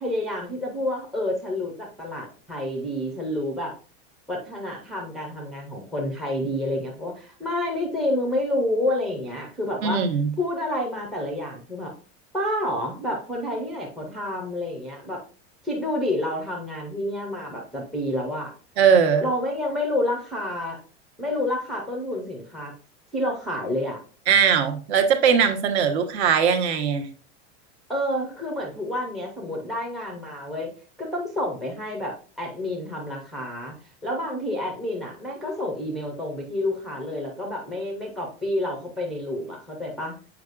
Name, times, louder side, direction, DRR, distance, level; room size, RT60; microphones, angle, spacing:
voice 1, 0.0-3.8 4.3-10.0 10.4-11.9 12.3-15.2 15.6-18.5 19.2-20.8 21.2-22.7 23.1-24.0 27.9-30.7 31.0-33.8 34.0-40.1, left 1 dB, ahead, 0 dB, 0.5 m, -29 dB
voice 2, 9.8-10.3 18.8-19.3 24.3-27.1, right 7 dB, 65° right, 6 dB, 1.2 m, -20 dB
7.9 x 4.9 x 2.4 m, 0.40 s
supercardioid pair, 180°, 36 cm